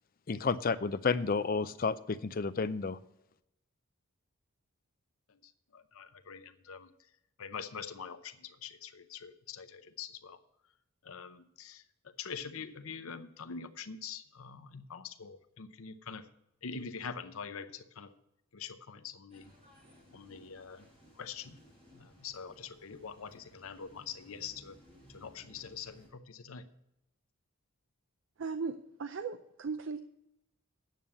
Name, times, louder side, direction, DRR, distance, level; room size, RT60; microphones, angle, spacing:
voice 1, 0.3-3.0, left 4 dB, 40° left, 12 dB, 0.4 m, -31 dB
voice 2, 5.3-6.9 7.4-10.4 11.0-11.8 12.2-16.3 16.6-18.1 18.5-19.5 20.1-20.9 21.2-21.6 21.9-24.8 25.1-26.6, left 6 dB, 75° left, 10 dB, 0.7 m, -44 dB
sound 1, 19.3-26.1, equal, 30° right, 4.4 m, -60 dB
voice 3, 28.4-30.0, right 5 dB, 60° right, 10 dB, 0.5 m, -37 dB
9.2 x 7.0 x 7.5 m, 0.84 s
head